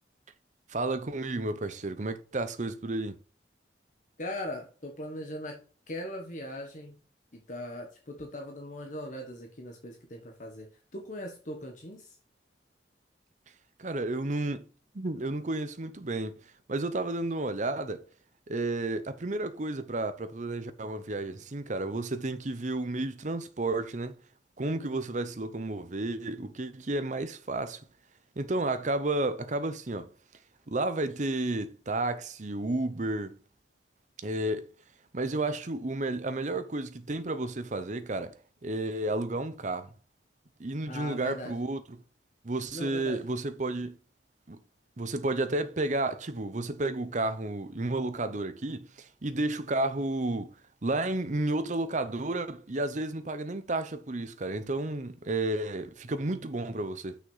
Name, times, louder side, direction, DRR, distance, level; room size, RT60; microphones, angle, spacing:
voice 1, 0.7-3.2 13.8-14.6 14.9-16.3 16.7-18.1 18.5-24.2 24.6-27.8 28.4-30.1 30.7-33.4 34.2-34.7 35.1-38.3 38.6-39.9 40.6-42.0 42.4-44.0 44.5-44.6 45.0-50.5 50.8-57.2, right 2 dB, 45° right, 0.8 m, -32 dB
voice 2, 4.2-5.6 5.9-7.0 7.3-12.2 24.8-24.9 40.9-41.6 42.7-43.2, left 1 dB, 45° left, 1.3 m, -40 dB
6.3 x 6.0 x 5.5 m
head